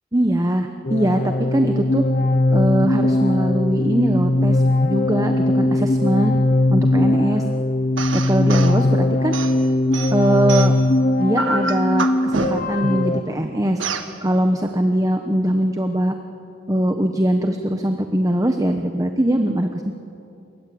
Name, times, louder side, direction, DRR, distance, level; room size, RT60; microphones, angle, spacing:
voice 1, 0.1-2.0 2.5-6.3 6.7-7.4 8.1-9.3 10.1-10.7 11.2-13.8 14.2-16.1 16.7-19.9, right 1 dB, 15° right, 6 dB, 1.1 m, -21 dB
sound 1, 0.9-13.2, left 2 dB, 45° left, 0.8 m, -20 dB
sound 2, 8.0-8.8 9.3-10.9 11.4-12.8 13.8-14.1, right 3 dB, 80° right, 1.8 m, -27 dB
28.5 x 23.0 x 8.6 m, 2.8 s
head